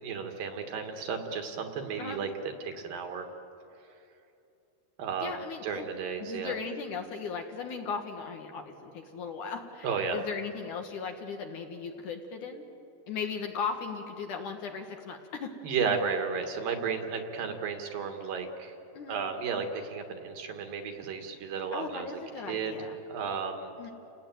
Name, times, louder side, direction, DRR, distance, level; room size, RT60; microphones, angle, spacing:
voice 1, 0.0-2.3 2.6-3.3 5.0-6.5 9.8-10.2 15.6-18.7 19.1-22.1 22.5-22.7 23.1-23.9, right 5 dB, 65° right, 5 dB, 3.1 m, -33 dB
voice 2, 5.2-5.9 6.2-12.6 13.1-15.5 18.9-19.2 21.7-23.0 23.8-23.9, left 5 dB, 60° left, 4 dB, 2.4 m, -37 dB
30.0 x 18.5 x 9.1 m, 2.9 s
omnidirectional pair, 4.6 m